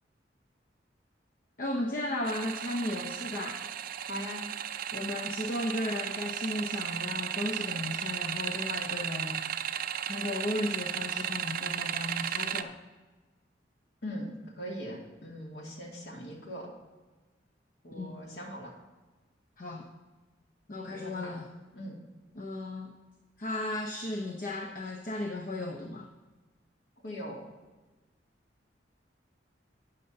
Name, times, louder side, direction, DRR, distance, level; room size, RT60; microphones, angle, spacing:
voice 1, 1.6-3.6 4.9-9.4 10.1-12.8 17.9-18.2 19.6-19.8 20.7-21.5 22.4-22.9 23.4-26.1, left 1 dB, 50° left, 2 dB, 0.8 m, -35 dB
sound 1, 2.2-12.6, right 9 dB, 50° right, 0.4 m, -35 dB
voice 2, 4.1-4.4 14.0-16.7 17.8-18.7 20.9-21.3 21.7-22.0 27.0-27.4, equal, 65° left, -2 dB, 2.4 m, -40 dB
12.0 x 9.1 x 2.8 m, 1.3 s
head